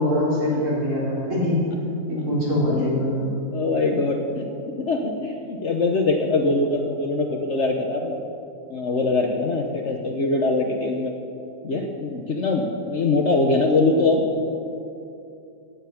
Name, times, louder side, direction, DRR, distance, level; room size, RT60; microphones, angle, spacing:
voice 1, 0.0-1.6 2.1-3.2, left 1 dB, 50° right, -7 dB, 4.3 m, -23 dB
voice 2, 3.2-8.2 8.7-11.1 11.6-14.3, left 3 dB, 50° left, 3 dB, 1.1 m, -23 dB
15.5 x 9.2 x 5.9 m, 2.6 s
omnidirectional pair, 1.7 m